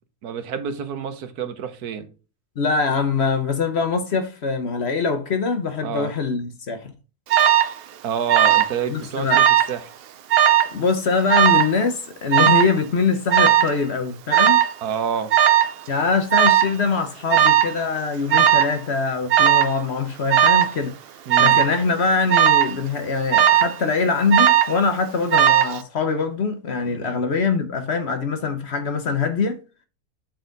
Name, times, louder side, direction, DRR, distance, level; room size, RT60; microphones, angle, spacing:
voice 1, 0.2-2.1 5.8-6.1 8.0-9.9 14.8-15.3 21.3-21.6 26.9-27.2, right 7 dB, 90° right, 1.5 m, -28 dB
voice 2, 2.6-6.9 8.9-9.4 10.7-14.6 15.9-20.9 21.4-29.6, left 4 dB, 50° left, 1.1 m, -23 dB
Alarm, 7.3-7.7 8.3-8.8 9.0-9.7 10.3-10.7 11.3-11.7 12.3-12.7 13.3-13.7 14.3-14.7 15.3-15.7 16.3-16.7 17.3-17.7 18.3-18.8 19.3-19.7 20.3-20.7 21.3-21.7 22.3-22.7 23.3-23.8 24.3-24.8 25.3-25.8, right 10 dB, 70° right, 0.5 m, -16 dB
8.2 x 4.2 x 3.9 m
omnidirectional pair, 1.6 m